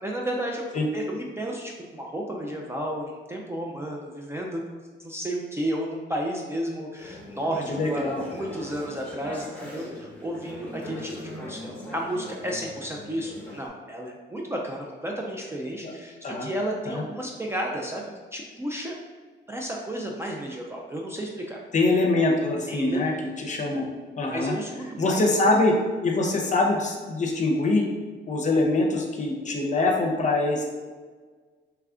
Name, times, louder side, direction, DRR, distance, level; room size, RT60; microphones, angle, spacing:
voice 1, 0.0-18.9 19.5-21.6 22.7-23.2 24.3-25.2, right 1 dB, 15° right, -1 dB, 0.4 m, -32 dB
Conversation / Chatter, 7.0-13.7, left 1 dB, 5° left, 1.1 m, -40 dB
voice 2, 7.7-8.2 15.8-15.9 16.2-16.5 16.9-17.0 21.7-23.1 23.4-23.8 24.2-24.6 25.0-25.7 26.0-27.8 28.3-30.6, left 2 dB, 35° left, 0 dB, 0.7 m, -23 dB
3.2 x 2.3 x 3.6 m, 1.5 s
cardioid pair, 90°, 20 cm